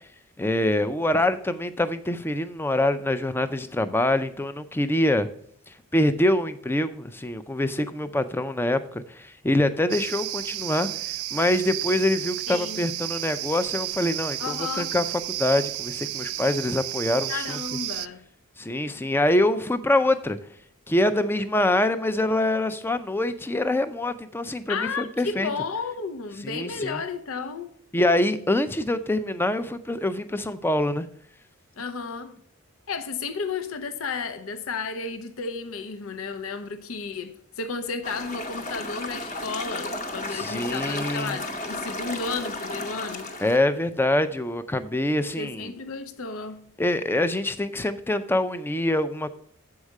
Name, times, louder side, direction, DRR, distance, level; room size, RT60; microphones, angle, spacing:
voice 1, 0.4-5.3 5.7-17.6 18.6-20.4 20.9-25.5 26.4-27.0 27.9-31.1 40.3-41.4 43.4-45.7 46.8-49.3, left 1 dB, 10° left, 0.4 m, -25 dB
sound 1, 9.9-18.1, right 15 dB, 85° right, 0.3 m, -32 dB
voice 2, 12.5-12.9 14.4-14.9 17.3-18.2 24.7-27.7 31.8-32.4 32.9-43.3 45.4-46.7, left 4 dB, 75° left, 0.6 m, -33 dB
sound 2, 38.0-43.6, left 2 dB, 35° left, 0.9 m, -33 dB
7.2 x 4.8 x 6.4 m
head